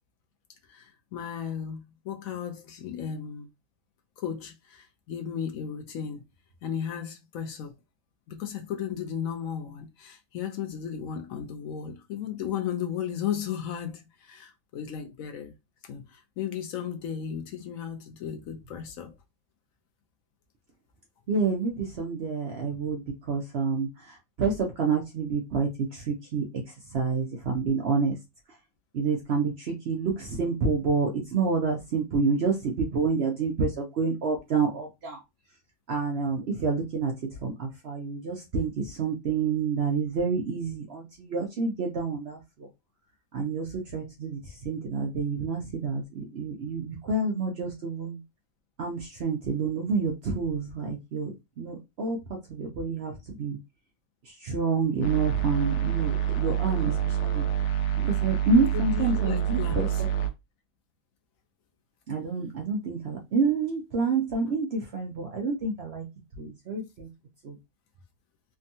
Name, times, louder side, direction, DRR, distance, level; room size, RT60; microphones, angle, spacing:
voice 1, 0.7-3.5 4.2-6.2 6.6-7.7 8.3-15.5 15.9-19.1 58.7-60.0, left 8 dB, 70° left, 0.9 m, -35 dB
voice 2, 21.3-23.0 23.3-26.4 26.9-28.2 28.9-35.2 35.9-37.1 37.4-42.7 43.3-48.2 48.8-53.6 54.3-57.4 58.0-60.1 62.1-66.0 66.4-67.1 67.4-67.6, right 4 dB, 60° right, 0.7 m, -28 dB
sound 1, 55.0-60.3, right 10 dB, 90° left, 1.2 m, -27 dB
3.4 x 2.2 x 2.6 m
omnidirectional pair, 1.6 m